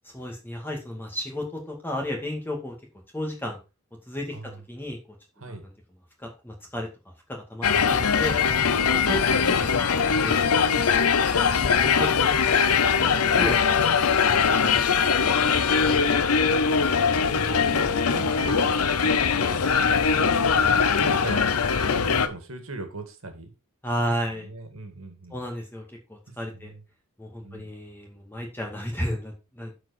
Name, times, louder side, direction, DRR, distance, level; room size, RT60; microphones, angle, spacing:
voice 1, 0.1-2.8 3.1-3.6 4.1-5.0 5.4-5.7 6.2-8.4 8.9-9.5 9.8-10.7 11.4-12.5 13.0-13.5 23.8-24.5 25.3-26.7 27.2-29.9, equal, 10° left, 1 dB, 2.2 m, -34 dB
voice 2, 4.3-4.6 5.4-5.6 7.6-8.0 16.5-23.5 24.0-25.4 26.5-26.8 27.4-27.7, right 2 dB, 70° right, 6 dB, 2.1 m, -40 dB
sound 1, 7.6-22.3, left 6 dB, 85° left, 0.8 m, -21 dB
12.0 x 4.8 x 4.3 m, 0.29 s
head